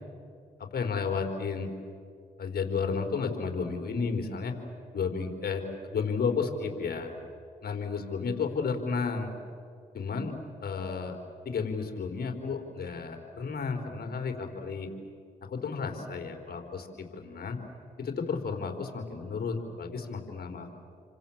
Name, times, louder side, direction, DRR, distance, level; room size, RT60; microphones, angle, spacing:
voice 1, 0.6-1.7 2.4-4.5 4.9-7.1 7.6-9.3 9.9-10.3 10.6-11.2 11.4-14.9 15.4-17.6 18.0-20.8, left 5 dB, 55° left, 4 dB, 4.4 m, -32 dB
29.0 x 25.5 x 7.5 m, 2.3 s
supercardioid pair, 55°, 19 cm